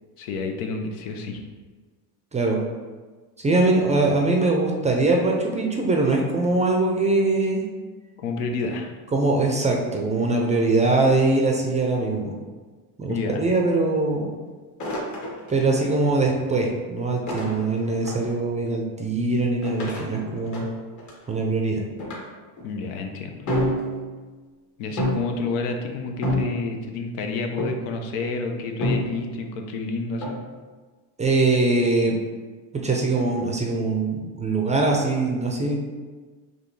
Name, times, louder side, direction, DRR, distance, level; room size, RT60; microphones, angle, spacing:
voice 1, 0.2-1.4 8.2-8.9 13.1-13.5 22.6-23.5 24.8-30.4, left 3 dB, 85° left, 4 dB, 0.7 m, -29 dB
voice 2, 3.4-7.7 9.1-12.3 13.0-14.3 15.5-20.7 21.3-21.8 31.2-32.2 32.8-35.8, right 2 dB, 15° right, 0 dB, 0.4 m, -22 dB
sound 1, 14.8-15.9 17.3-18.3 19.6-21.3 22.0-22.2 22.6-22.8 23.5-24.2 25.0-25.5 26.2-26.9 27.6-28.0 28.8-29.4 30.2-30.4, equal, 40° left, 1.2 m, -28 dB
5.1 x 2.8 x 3.1 m, 1.4 s
cardioid pair, 120°, 45 cm